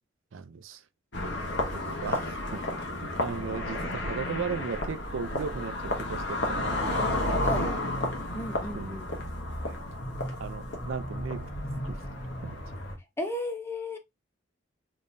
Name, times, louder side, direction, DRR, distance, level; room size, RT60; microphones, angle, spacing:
voice 1, 0.3-0.8 1.7-7.7 8.7-9.0 9.6-9.7 10.4-11.4 11.9-12.0 12.4-12.6, right 5 dB, 85° right, 0.4 m, -37 dB
sound 1, 1.1-13.0, left 1 dB, 60° left, 1.0 m, -32 dB
voice 2, 7.4-7.7 8.3-9.1 13.2-14.0, left 1 dB, 10° left, 0.6 m, -34 dB
3.6 x 3.1 x 2.6 m
head